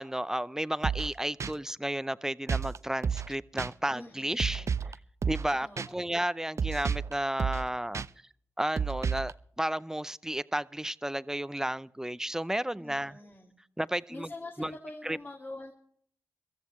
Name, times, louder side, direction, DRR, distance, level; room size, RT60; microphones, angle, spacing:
voice 1, 0.0-4.7 5.3-8.0 8.6-13.2 13.8-14.3 14.6-14.7 15.0-15.2, right 1 dB, 10° right, 0.5 m, -32 dB
sound 1, 0.8-1.1 1.4-1.5 2.5-2.8 3.0-3.3 3.6-3.7 4.4-4.9 5.2-5.5 5.8-5.9 6.6-7.1 7.4-7.7 7.9-8.1 8.8-9.3, right 6 dB, 55° right, 0.5 m, -30 dB
voice 2, 3.9-4.8 5.6-6.3 12.8-13.6 14.1-15.7, left 2 dB, 35° left, 2.1 m, -45 dB
23.0 x 14.0 x 3.1 m
supercardioid pair, 40°, 6 cm